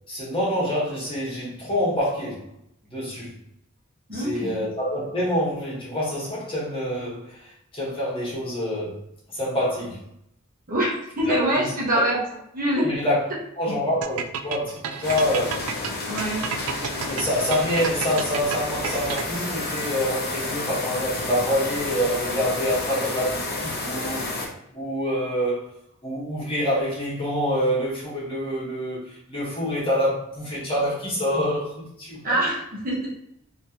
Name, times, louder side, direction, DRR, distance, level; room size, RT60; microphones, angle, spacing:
voice 1, 0.1-2.5 2.9-3.3 4.1-9.0 9.3-10.0 11.3-11.7 11.9-12.2 12.8-13.2 13.6-15.8 17.1-24.3 24.7-25.7 26.0-32.4, equal, 25° left, -7 dB, 1.4 m, -26 dB
voice 2, 4.1-4.6 10.7-12.2 12.5-12.9 16.1-16.4 32.2-33.1, right 1 dB, 40° right, -5 dB, 1.2 m, -24 dB
sound 1, 14.0-19.5, right 7 dB, 90° right, 0.3 m, -31 dB
sound 2, 15.0-24.5, left 2 dB, 50° left, 0.7 m, -30 dB
3.2 x 3.0 x 2.9 m, 0.77 s
head